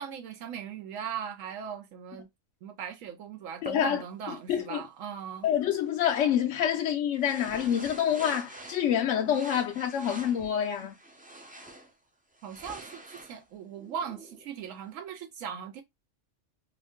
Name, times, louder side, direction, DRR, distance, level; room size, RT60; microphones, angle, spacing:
voice 1, 0.0-2.3 2.6-5.5 12.4-15.8, right 7 dB, 85° right, 0.9 m, -39 dB
voice 2, 3.6-4.8 5.4-10.9, left 9 dB, 70° left, 0.9 m, -27 dB
sound 1, 3.6-3.7 7.2-9.0 9.3-11.9 12.3-14.5, right 2 dB, 10° right, 0.3 m, -46 dB
2.7 x 2.6 x 3.5 m
omnidirectional pair, 1.3 m